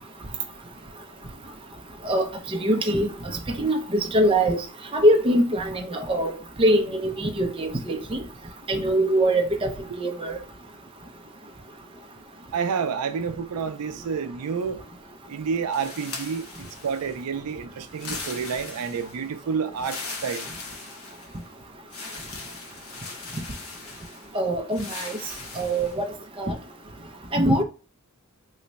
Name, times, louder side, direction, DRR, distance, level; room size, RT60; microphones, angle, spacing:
voice 1, 2.0-3.1 3.6-4.6 4.9-6.3 6.6-8.2 8.7-10.4 24.3-25.1 25.6-26.1 26.4-26.5 27.3-27.6, right 1 dB, 25° right, 0.5 m, -23 dB
voice 2, 12.5-14.8 15.3-20.5, right 6 dB, 85° right, 0.4 m, -29 dB
sound 1, 15.7-17.2 17.9-19.2 19.8-21.4 21.9-24.3 24.7-26.0, left 4 dB, 75° left, 0.9 m, -39 dB
3.1 x 2.1 x 3.9 m
head